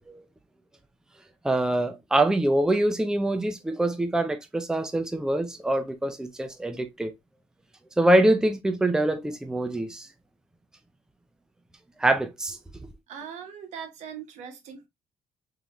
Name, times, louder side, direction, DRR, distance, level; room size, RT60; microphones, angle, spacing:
voice 1, 1.4-7.1 8.0-10.1 12.0-12.6, right 1 dB, 5° right, 0.5 m, -24 dB
voice 2, 13.1-14.9, right 7 dB, 80° right, 1.1 m, -40 dB
3.9 x 3.2 x 2.9 m
cardioid pair, 130°, 12 cm